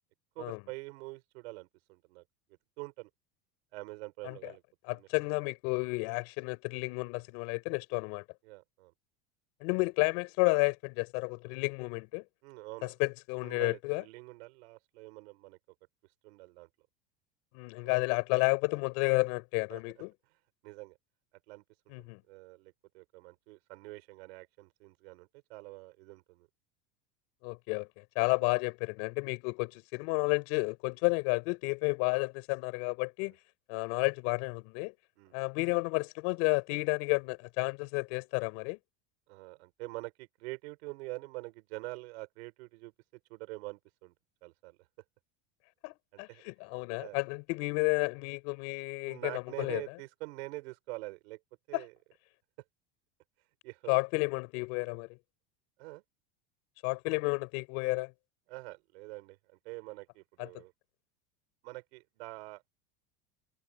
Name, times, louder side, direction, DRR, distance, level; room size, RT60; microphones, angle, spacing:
voice 1, 0.3-2.2 2.5-3.1 3.7-4.6 4.9-5.1 8.4-8.9 12.4-12.9 13.4-15.6 16.2-16.7 17.8-18.1 19.7-20.0 20.6-21.0 21.5-26.5 35.2-35.4 39.3-44.1 44.4-44.9 46.1-46.4 47.0-47.2 49.1-51.4 51.7-51.9 53.6-53.9 55.8-56.0 58.5-60.7 61.6-62.6, right 23 dB, 75° right, 5.2 m, -45 dB
voice 2, 4.9-8.2 9.6-12.2 12.8-14.0 17.5-20.1 21.9-22.2 27.4-33.4 33.7-34.9 35.3-38.8 45.8-49.8 51.7-51.8 53.9-55.1 56.8-58.1 60.4-60.5, left 31 dB, 55° left, 5.0 m, -31 dB
supercardioid pair, 160°, 32 cm